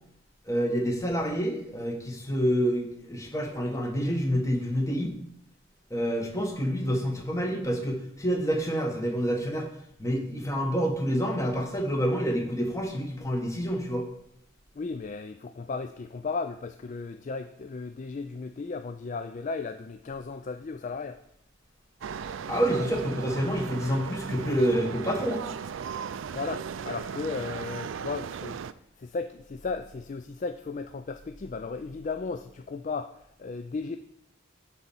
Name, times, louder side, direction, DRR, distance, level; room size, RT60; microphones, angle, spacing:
voice 1, 0.5-5.1 5.9-9.7 10.0-14.1 22.5-25.4, equal, 15° left, 2 dB, 1.3 m, -28 dB
voice 2, 14.8-21.2 26.3-28.7 29.0-34.0, left 4 dB, 40° left, 9 dB, 0.3 m, -35 dB
sound 1, 22.0-28.7, right 6 dB, 70° right, 0.4 m, -37 dB
9.9 x 4.2 x 7.1 m, 0.74 s
head